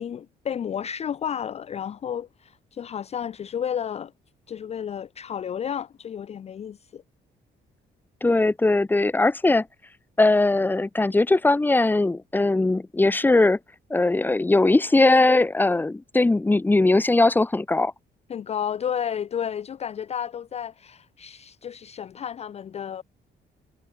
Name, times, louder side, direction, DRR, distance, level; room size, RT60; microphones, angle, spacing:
voice 1, 0.0-4.1 4.5-7.0 18.3-23.0, left 8 dB, 35° left, 0.6 m, -32 dB
voice 2, 8.2-9.7 10.2-13.6 13.9-17.9, left 2 dB, 10° left, 1.1 m, -20 dB
cardioid pair, 150°, 18 cm